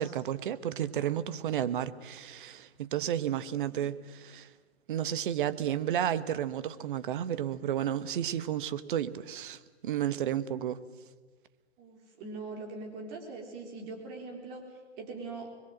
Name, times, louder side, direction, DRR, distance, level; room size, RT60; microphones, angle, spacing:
voice 1, 0.0-4.5 4.9-10.8, right 10 dB, 50° right, 1.2 m, -32 dB
voice 2, 11.8-15.5, right 3 dB, 30° right, 3.9 m, -42 dB
25.5 x 22.0 x 7.9 m
hypercardioid pair, 135°, 34 cm